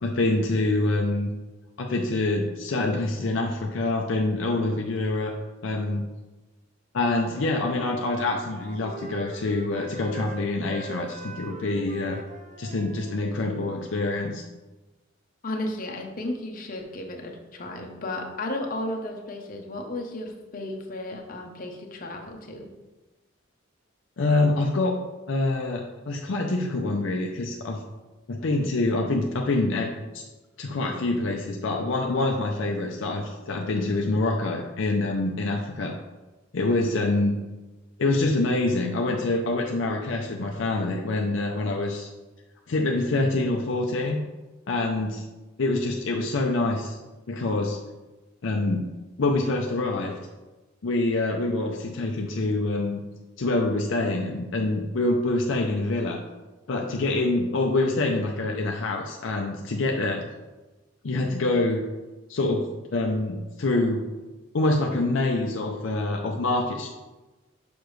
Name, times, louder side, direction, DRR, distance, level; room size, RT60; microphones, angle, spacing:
voice 1, 0.0-1.3 1.8-5.3 5.6-6.1 6.9-12.2 12.6-14.4 24.2-25.0 25.3-27.8 28.3-30.2 30.6-35.9 36.5-37.4 38.0-42.1 42.7-44.2 44.7-45.2 45.6-47.0 47.3-47.8 48.4-48.9 49.2-50.2 50.8-53.0 53.4-56.2 56.7-60.3 61.0-61.9 62.3-64.1 64.5-66.9, left 2 dB, 65° left, 0 dB, 0.5 m, -26 dB
Wind instrument woodwind instrument, 7.3-14.1, right 3 dB, 35° right, 0.3 m, -42 dB
voice 2, 15.4-22.7, left 1 dB, 45° left, 2 dB, 0.8 m, -34 dB
6.8 x 5.2 x 3.1 m, 1.1 s
head